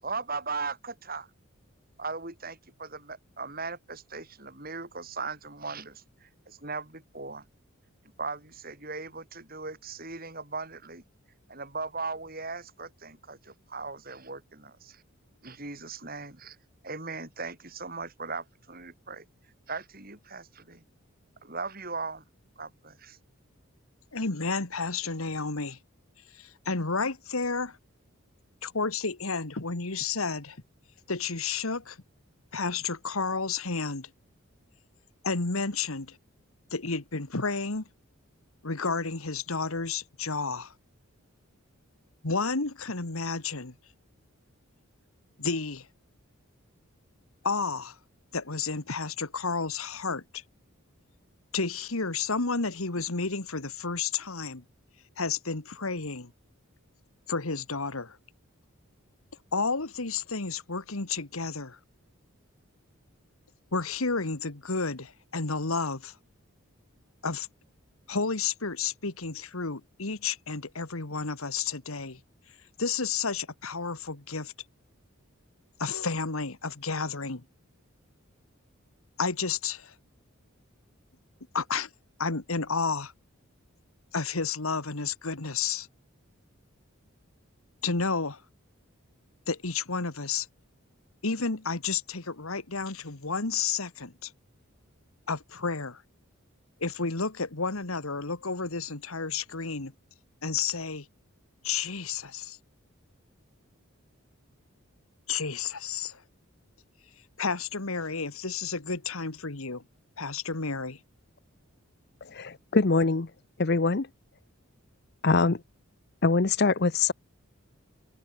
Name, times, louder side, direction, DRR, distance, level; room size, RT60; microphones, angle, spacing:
voice 1, 0.0-1.3 2.0-7.4 8.2-11.0 11.5-15.0 15.4-16.6 16.8-19.3 19.7-20.8 21.4-22.2 22.6-23.2, right 4 dB, 45° right, 7.1 m, -38 dB
voice 2, 24.1-25.8 26.3-27.8 28.6-30.6 31.1-32.0 32.5-34.1 35.2-36.2 36.7-37.8 38.6-40.7 42.2-43.7 45.4-45.9 47.4-48.0 48.3-50.4 51.5-54.6 55.2-56.3 57.3-58.2 59.5-61.8 63.7-66.2 67.2-67.5 68.1-72.2 72.8-74.5 75.8-77.4 79.2-79.9 81.5-81.9 82.2-83.1 84.1-85.9 87.8-88.4 89.5-90.5 91.2-94.3 95.3-96.0 96.8-99.9 100.4-101.1 101.6-102.6 105.3-106.2 107.4-109.8 110.2-111.0, left 4 dB, 80° left, 2.0 m, -31 dB
voice 3, 112.3-113.3 113.6-114.1 115.2-115.6 116.2-117.1, left 3 dB, 50° left, 0.8 m, -23 dB
head